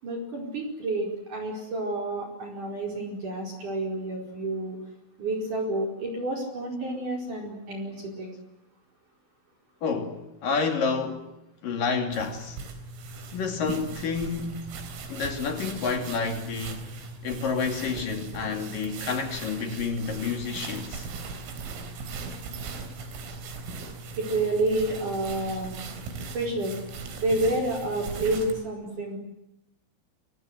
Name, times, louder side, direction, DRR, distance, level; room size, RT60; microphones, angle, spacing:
voice 1, 0.0-4.8 5.2-8.3 24.2-25.8 26.3-26.8 27.2-29.2, right 2 dB, 40° right, 5.9 m, -29 dB
voice 2, 9.8-11.3 11.6-12.6 13.3-14.7 15.1-16.9 17.2-21.1, left 5 dB, 50° left, 3.7 m, -29 dB
sound 1, 12.1-28.6, right 4 dB, 80° right, 6.4 m, -39 dB
29.0 x 24.0 x 7.8 m
omnidirectional pair, 6.0 m